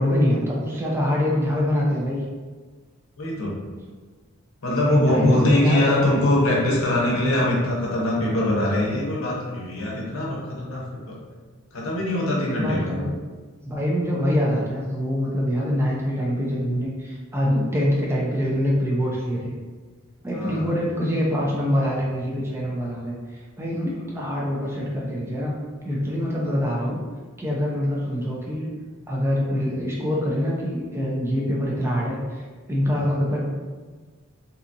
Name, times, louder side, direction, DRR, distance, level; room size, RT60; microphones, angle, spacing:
voice 1, 0.0-2.2 4.8-6.0 12.5-13.2 13.6-19.5 20.2-25.5 25.8-27.0 27.4-28.7 29.1-33.5, equal, 10° right, -4 dB, 0.4 m, -24 dB
voice 2, 3.2-3.5 4.6-11.2 11.7-12.9 20.3-20.7, left 1 dB, 65° left, -4 dB, 0.7 m, -22 dB
2.7 x 2.4 x 2.5 m, 1.4 s
head